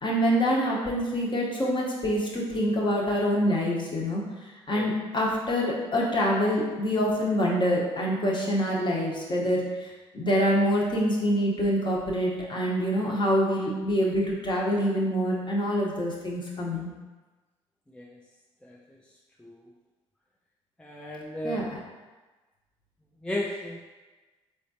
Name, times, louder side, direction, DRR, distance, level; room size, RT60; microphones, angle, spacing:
voice 1, 0.0-4.2 4.7-16.9 21.4-21.8, equal, 30° left, -3 dB, 1.1 m, -26 dB
voice 2, 20.8-21.6 23.2-23.8, left 1 dB, 5° left, -2 dB, 0.5 m, -34 dB
4.2 x 3.6 x 2.8 m, 1.2 s
hypercardioid pair, 50°, 15 cm